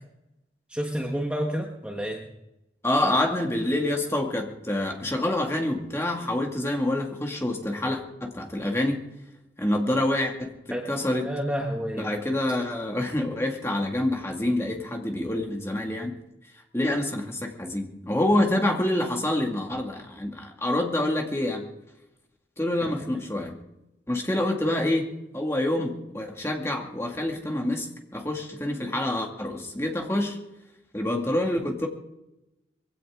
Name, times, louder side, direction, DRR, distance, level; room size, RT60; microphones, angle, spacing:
voice 1, 0.7-2.3 10.7-10.9 11.2-12.1 22.8-22.9 24.6-24.9, equal, 5° right, 0 dB, 1.4 m, -30 dB
voice 2, 2.8-9.0 9.6-10.6 10.9-11.3 11.9-16.2 16.7-21.6 22.6-23.6 24.1-25.1 25.3-30.4 30.9-31.9, left 1 dB, 15° left, 2 dB, 2.2 m, -27 dB
22.0 x 16.5 x 3.8 m, 0.92 s
head